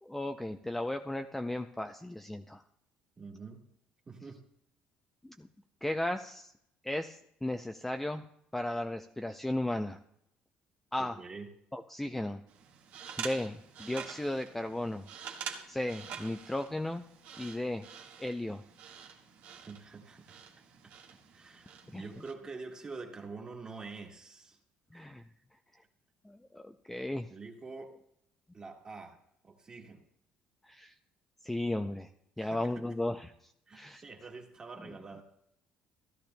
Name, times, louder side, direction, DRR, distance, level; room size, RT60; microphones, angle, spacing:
voice 1, 0.0-2.6 5.2-5.5 5.8-6.5 6.8-8.3 8.5-10.0 10.9-11.2 11.7-12.4 13.2-15.0 15.7-17.0 17.4-17.9 18.2-18.6 21.9-22.0 24.9-25.2 26.2-27.3 30.7-30.9 31.4-32.1 32.4-34.0, left 1 dB, 5° left, 6 dB, 0.4 m, -35 dB
voice 2, 3.2-3.6 4.1-4.4 11.0-11.5 19.7-20.4 21.3-24.6 24.9-25.0 27.3-28.0 28.5-29.2 29.4-30.0 32.4-32.7 33.7-35.2, right 4 dB, 25° right, 2 dB, 1.6 m, -46 dB
sound 1, 12.5-22.3, right 7 dB, 75° right, 1.5 m, -47 dB
15.5 x 12.0 x 2.2 m, 0.75 s
cardioid pair, 130°, 3 cm